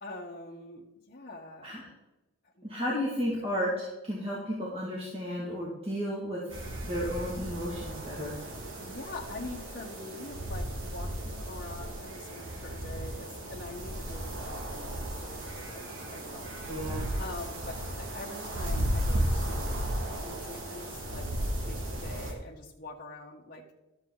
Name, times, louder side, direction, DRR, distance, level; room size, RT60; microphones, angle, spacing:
voice 1, 0.0-1.8 2.5-2.7 8.8-16.8 17.2-19.9 20.2-23.8, left 2 dB, 40° left, -3 dB, 1.2 m, -44 dB
voice 2, 2.6-6.4 6.8-8.4 16.7-17.0, equal, 25° right, -5 dB, 2.1 m, -33 dB
sound 1, 6.5-22.3, right 1 dB, 60° right, 2.1 m, -35 dB
12.5 x 7.4 x 3.9 m, 0.99 s
head